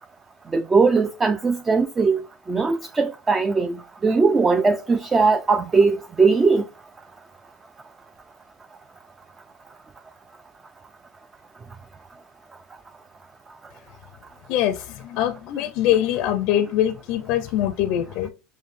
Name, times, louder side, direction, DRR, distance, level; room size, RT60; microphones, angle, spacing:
voice 1, 0.5-2.2 2.5-6.6, right 4 dB, 20° right, 0.3 m, -19 dB
voice 2, 14.5-18.3, left 11 dB, 60° left, 0.4 m, -23 dB
5.3 x 2.1 x 3.1 m
supercardioid pair, 105°, 0 cm